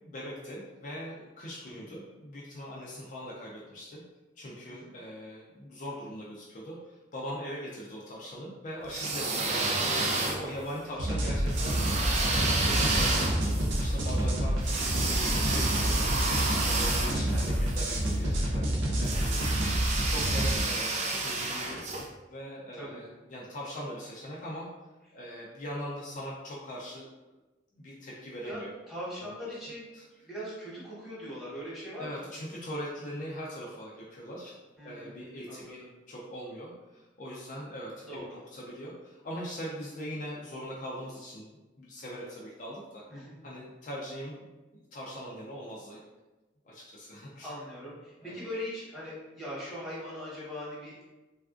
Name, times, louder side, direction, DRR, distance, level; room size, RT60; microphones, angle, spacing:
voice 1, 0.0-4.0 4.4-14.6 14.9-16.1 16.6-19.4 19.7-21.8 22.3-24.7 25.1-27.1 27.7-28.7 29.2-29.3 29.9-30.0 32.0-34.5 34.8-43.0 43.4-44.5 44.9-46.0 46.6-47.5 48.2-48.4, equal, 45° left, -5 dB, 0.4 m, -41 dB
sound 1, 8.8-10.7 11.5-17.9 19.0-22.0, right 3 dB, 35° right, 0.3 m, -30 dB
sound 2, 11.0-20.6, right 1 dB, 80° right, 0.6 m, -28 dB
voice 2, 17.0-17.8 22.7-23.0 28.4-28.6 28.9-29.9 30.2-32.3 34.8-35.9 38.0-38.4 43.1-43.3 47.4-51.0, equal, ahead, -9 dB, 1.1 m, -41 dB
3.4 x 2.3 x 2.4 m, 1.1 s
head